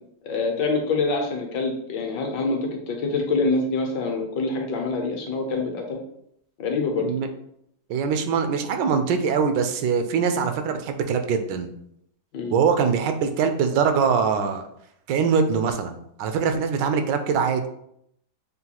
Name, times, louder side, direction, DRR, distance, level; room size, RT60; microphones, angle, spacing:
voice 1, 0.2-6.0 6.6-7.1 12.3-12.5, left 3 dB, 75° left, 2 dB, 1.4 m, -25 dB
voice 2, 7.9-11.7 12.5-14.6 15.1-17.7, right 6 dB, 80° right, 7 dB, 1.2 m, -23 dB
6.6 x 2.3 x 2.9 m, 0.73 s
omnidirectional pair, 1.9 m